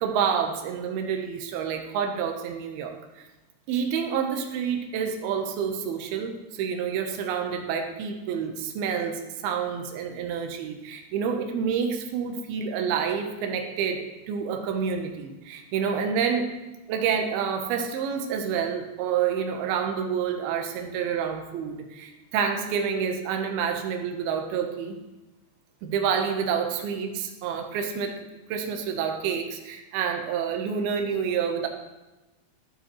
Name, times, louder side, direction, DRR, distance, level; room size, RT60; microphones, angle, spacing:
voice 1, 0.0-3.0 3.7-16.6 16.9-25.0 25.8-28.2 28.5-31.7, right 7 dB, 80° right, 3 dB, 2.9 m, -28 dB
15.5 x 9.4 x 3.2 m, 1.1 s
omnidirectional pair, 4.6 m